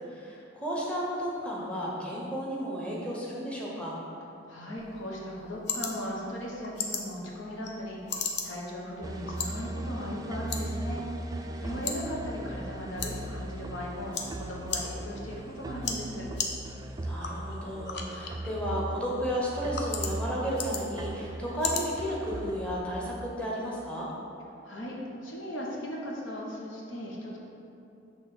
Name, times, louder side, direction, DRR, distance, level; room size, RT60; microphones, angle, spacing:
voice 1, 0.1-4.0 11.5-12.1 17.0-24.1, equal, 5° left, -6 dB, 1.0 m, -33 dB
voice 2, 4.5-16.3 24.6-25.0 25.2-27.4, equal, 85° left, -3 dB, 1.1 m, -37 dB
sound 1, 4.8-22.8, left 5 dB, 60° left, 0.6 m, -39 dB
sound 2, 9.0-23.0, right 1 dB, 20° right, 0.3 m, -38 dB
6.4 x 3.3 x 5.9 m, 2.7 s
head